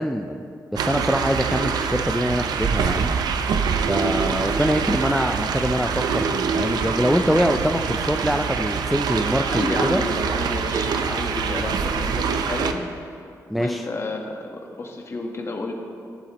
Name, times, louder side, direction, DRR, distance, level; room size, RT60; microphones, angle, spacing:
voice 1, 0.0-3.2 3.8-10.0 13.5-13.9, equal, ahead, 5 dB, 0.4 m, -24 dB
sound 1, 0.8-12.7, right 6 dB, 80° right, 0.6 m, -25 dB
voice 2, 4.1-4.4 9.5-12.8 13.5-15.7, left 2 dB, 40° left, 1 dB, 1.2 m, -31 dB
15.5 x 7.1 x 3.0 m, 2.4 s
cardioid pair, 95°, 7 cm